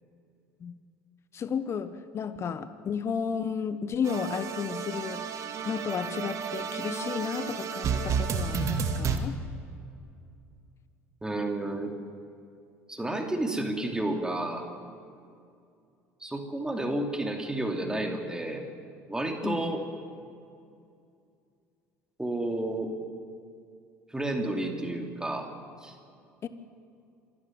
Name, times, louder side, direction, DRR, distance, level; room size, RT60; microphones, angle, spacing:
voice 1, 1.3-5.3 5.6-9.4 19.4-19.8 26.4-26.5, left 6 dB, 40° left, 12 dB, 1.2 m, -33 dB
sound 1, 4.0-9.2, right 6 dB, 50° right, 2.1 m, -31 dB
voice 2, 11.2-11.9 12.9-14.7 16.2-18.6 19.1-19.8 22.2-22.9 24.1-25.5 25.8-25.9, right 1 dB, 10° right, 4 dB, 2.8 m, -31 dB
26.0 x 13.0 x 9.2 m, 2.4 s
hypercardioid pair, 75°, 7 cm